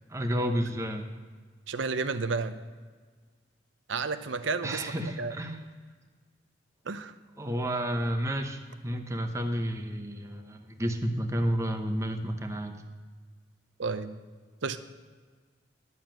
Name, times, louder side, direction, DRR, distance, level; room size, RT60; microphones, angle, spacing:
voice 1, 0.1-1.1 4.6-5.6 7.4-12.8, equal, 15° right, 5 dB, 0.9 m, -31 dB
voice 2, 1.7-2.6 3.9-4.8 5.2-5.3 6.9-7.1 13.8-14.1 14.6-14.8, right 4 dB, 75° right, 11 dB, 0.7 m, -31 dB
11.0 x 7.3 x 7.5 m, 1.5 s
head